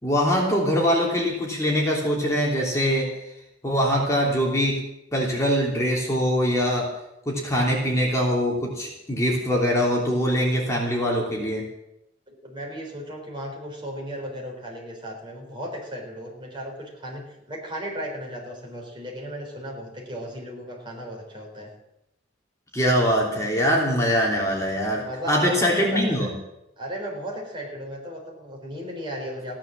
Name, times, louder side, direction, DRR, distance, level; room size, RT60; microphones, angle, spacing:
voice 1, 0.0-3.1 3.6-4.8 5.1-6.9 7.3-11.6 22.7-26.3, equal, 15° left, -2 dB, 3.0 m, -23 dB
voice 2, 12.3-21.7 24.9-26.4 26.8-29.6, equal, 25° right, 0 dB, 3.9 m, -35 dB
16.0 x 10.5 x 7.4 m, 0.86 s
head